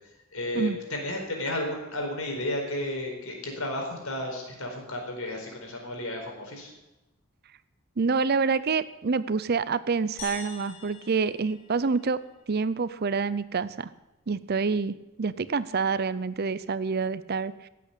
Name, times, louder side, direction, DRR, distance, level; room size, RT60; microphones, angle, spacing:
voice 1, 0.3-6.7, left 1 dB, 80° left, 2 dB, 4.4 m, -33 dB
voice 2, 8.0-12.2 12.5-13.9 14.3-17.7, right 4 dB, 45° right, 16 dB, 0.5 m, -27 dB
sound 1, 10.2-12.6, left 5 dB, 45° left, 3.4 m, -45 dB
16.5 x 8.4 x 8.3 m, 0.98 s
head